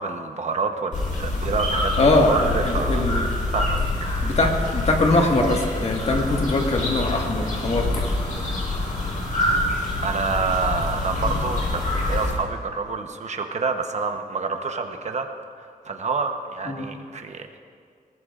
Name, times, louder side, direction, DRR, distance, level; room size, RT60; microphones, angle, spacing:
voice 1, 0.0-3.1 3.4-4.4 10.0-15.3 15.6-17.5, right 4 dB, 50° right, 5 dB, 1.0 m, -28 dB
sound 1, 0.9-12.3, left 2 dB, 65° left, 4.5 m, -26 dB
voice 2, 2.0-2.4 2.6-3.2 4.2-8.0 11.3-11.4 16.7-16.9, left 2 dB, 45° left, 1 dB, 1.7 m, -22 dB
21.0 x 19.0 x 2.5 m, 2.1 s
wide cardioid pair, 130°, 15 cm